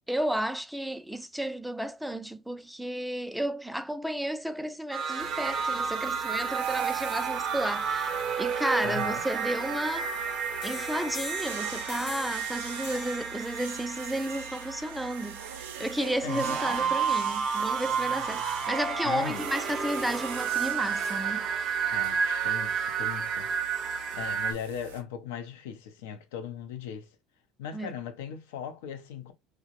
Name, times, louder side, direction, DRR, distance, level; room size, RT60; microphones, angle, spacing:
voice 1, 0.1-10.1 10.6-21.5 27.7-27.9, right 1 dB, 5° right, 0.3 m, -32 dB
sound 1, 4.9-24.5, right 6 dB, 50° right, 0.6 m, -31 dB
sound 2, 5.2-25.0, right 8 dB, 90° right, 0.3 m, -44 dB
voice 2, 8.8-9.2 16.2-17.0 19.0-19.5 21.9-27.2 27.6-29.3, left 8 dB, 85° left, 0.5 m, -39 dB
sound 3, 10.6-16.0, left 4 dB, 55° left, 0.9 m, -44 dB
2.5 x 2.0 x 2.8 m
hypercardioid pair, 80°, 0 cm